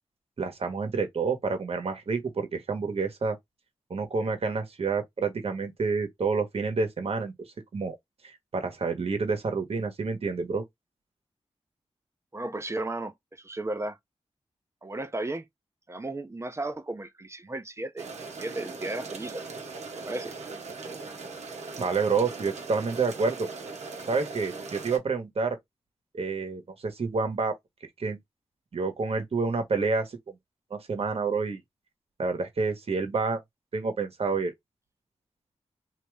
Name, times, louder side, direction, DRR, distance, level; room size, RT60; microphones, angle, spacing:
voice 1, 0.4-3.4 3.9-7.3 7.7-7.9 8.5-10.6 21.8-23.5 24.1-25.6 26.1-27.5 28.0-28.2 28.7-30.3 30.7-31.6 32.2-33.4 33.7-34.5, right 4 dB, 60° right, 1.2 m, -28 dB
voice 2, 12.3-14.0 14.8-15.5 15.9-18.1 18.4-19.4 20.0-20.3, right 2 dB, 25° right, 0.8 m, -34 dB
sound 1, 18.0-25.0, right 4 dB, 85° right, 1.0 m, -39 dB
3.0 x 2.7 x 3.5 m
wide cardioid pair, 80°, 11 cm